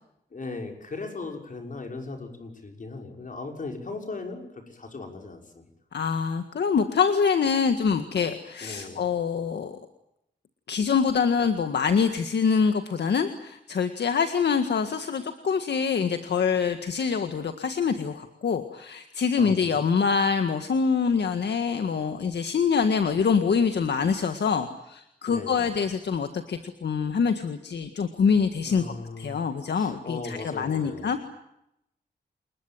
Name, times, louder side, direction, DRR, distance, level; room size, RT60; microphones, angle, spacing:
voice 1, 0.3-5.7 8.6-9.0 19.4-19.9 25.3-25.7 28.7-29.4 29.7-31.1, left 3 dB, 50° left, 3 dB, 6.3 m, -38 dB
voice 2, 5.9-9.8 10.7-28.8 29.2-31.2, left 6 dB, 75° left, 7 dB, 1.8 m, -25 dB
28.5 x 21.5 x 9.1 m, 0.82 s
wide cardioid pair, 95°, 18 cm